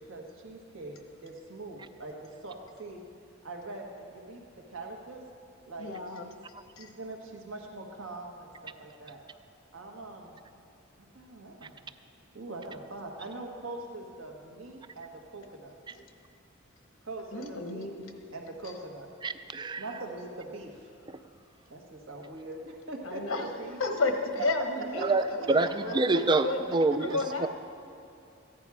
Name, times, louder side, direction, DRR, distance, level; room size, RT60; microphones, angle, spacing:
voice 1, 0.1-3.0 3.4-4.4 4.7-5.2 5.6-6.4 6.8-9.2 9.7-10.4 11.1-11.8 12.3-15.7 17.0-17.9 18.3-19.1 19.8-20.9 21.7-23.8 25.0-25.1, right 2 dB, 75° right, 1 dB, 1.5 m, -42 dB
voice 2, 5.8-6.3 6.8-6.9 15.9-16.0 17.3-18.1 18.6-18.7 23.0-27.5, left 3 dB, 90° left, 5 dB, 1.2 m, -33 dB
voice 3, 19.2-19.8 25.0-25.2 25.5-27.5, right 3 dB, 20° right, 12 dB, 0.3 m, -26 dB
14.5 x 10.0 x 4.8 m, 2.6 s
head